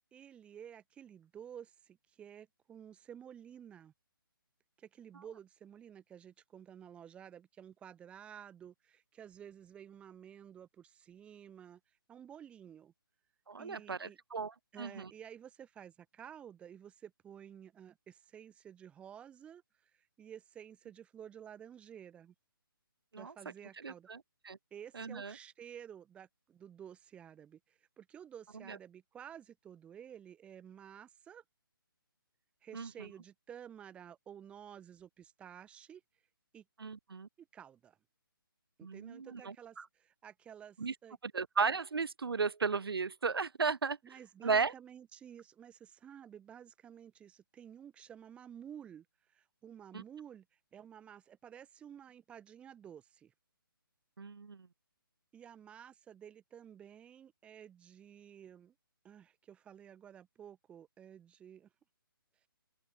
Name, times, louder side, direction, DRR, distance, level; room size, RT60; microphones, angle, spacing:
voice 1, 0.1-3.9 4.8-11.8 12.1-12.9 13.6-14.2 14.7-22.3 23.1-24.1 24.7-31.4 32.6-36.0 36.5-36.6 37.4-38.0 38.8-41.2 44.0-50.5 50.7-53.3 55.3-58.7 59.0-61.7, right 9 dB, 10° right, 3.8 m, -52 dB
voice 2, 13.5-15.1 23.1-23.3 23.8-24.2 24.5-24.6 24.9-25.3 28.7-28.8 32.7-32.9 36.8-37.3 38.8-39.8 40.8-40.9 41.2-44.0 44.4-44.7 49.9-50.0 54.2-54.7, right 5 dB, 80° right, 1.8 m, -35 dB
hypercardioid pair, 165°, 12 cm